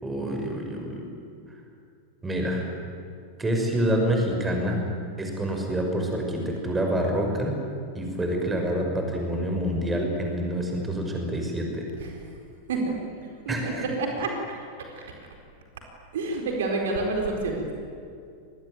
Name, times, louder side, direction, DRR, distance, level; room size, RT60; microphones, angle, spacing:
voice 1, 0.0-1.1 2.2-2.7 3.4-4.8 5.2-7.6 7.9-11.9 13.5-13.8, equal, 10° right, 2 dB, 6.0 m, -27 dB
voice 2, 13.4-14.3 14.9-15.1 16.1-17.7, right 3 dB, 60° right, 2 dB, 4.3 m, -28 dB
28.0 x 21.0 x 9.4 m, 2.3 s
figure-of-eight pair, 90°, 0 cm